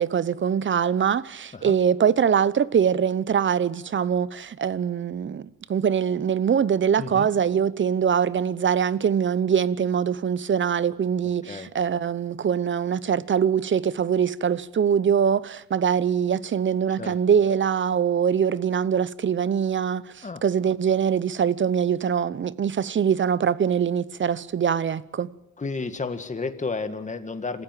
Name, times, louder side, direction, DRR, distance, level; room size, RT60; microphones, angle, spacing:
voice 1, 0.0-25.3, right 7 dB, 40° right, 0.8 m, -23 dB
voice 2, 7.0-7.3 11.2-11.7 17.0-17.2 20.2-20.4 25.6-27.6, left 4 dB, 25° left, 1.9 m, -32 dB
27.0 x 15.5 x 7.7 m
cardioid pair, 90°, 30 cm